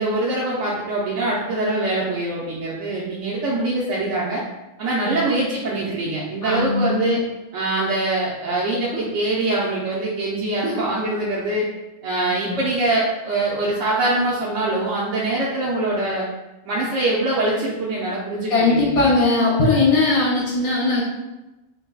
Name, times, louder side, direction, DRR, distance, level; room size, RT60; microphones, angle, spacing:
voice 1, 0.0-4.4 4.8-7.2 7.5-11.6 12.0-16.3 16.6-19.0, right 2 dB, 70° right, -6 dB, 1.0 m, -23 dB
voice 2, 6.4-7.0 12.3-12.6 18.5-21.0, left 3 dB, 55° left, -5 dB, 0.4 m, -19 dB
5.2 x 2.2 x 2.2 m, 1.0 s
omnidirectional pair, 1.4 m